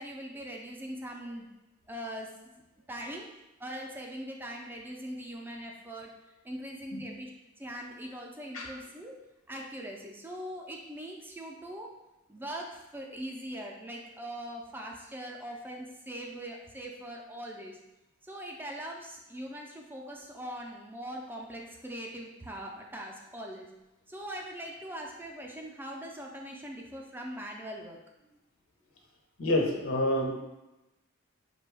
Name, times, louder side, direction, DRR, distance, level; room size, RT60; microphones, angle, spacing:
voice 1, 0.0-1.5 1.9-2.3 2.9-3.3 3.6-6.1 6.4-7.3 7.6-9.2 9.5-11.9 12.3-17.8 18.2-23.7 24.1-28.0, equal, 10° right, 0 dB, 0.4 m, -41 dB
voice 2, 29.4-30.4, left 1 dB, 80° left, 1 dB, 0.8 m, -28 dB
5.2 x 2.2 x 3.3 m, 0.98 s
head